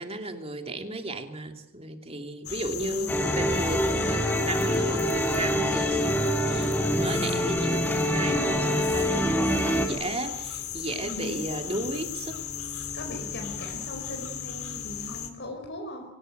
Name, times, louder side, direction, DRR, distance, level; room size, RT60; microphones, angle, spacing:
voice 1, 0.0-12.4, right 1 dB, 25° right, 6 dB, 2.7 m, -34 dB
sound 1, 2.4-15.3, left 8 dB, 75° left, 3.1 m, -36 dB
voice 2, 2.9-3.3 11.0-11.4 12.9-16.0, left 1 dB, 50° left, 2 dB, 5.0 m, -39 dB
sound 2, 3.1-9.9, equal, 10° left, 3.5 m, -25 dB
24.5 x 19.0 x 9.2 m, 0.81 s
head